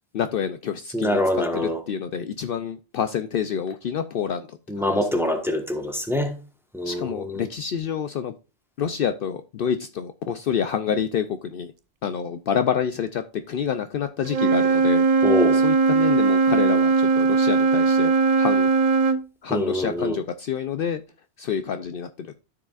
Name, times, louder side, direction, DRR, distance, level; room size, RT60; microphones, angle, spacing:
voice 1, 0.1-1.2 1.5-4.4 4.8-5.0 6.9-8.3 8.8-11.3 11.5-11.7 12.0-15.1 15.6-18.1 18.4-18.7 19.4-21.0 21.4-22.1, left 7 dB, 65° left, 0.7 m, -27 dB
voice 2, 0.9-1.8 4.7-6.3 6.7-7.5 15.2-15.6 19.5-20.2, left 1 dB, ahead, 1.2 m, -24 dB
Wind instrument woodwind instrument, 14.3-19.2, right 4 dB, 50° right, 0.5 m, -19 dB
13.5 x 4.9 x 2.4 m
omnidirectional pair, 1.1 m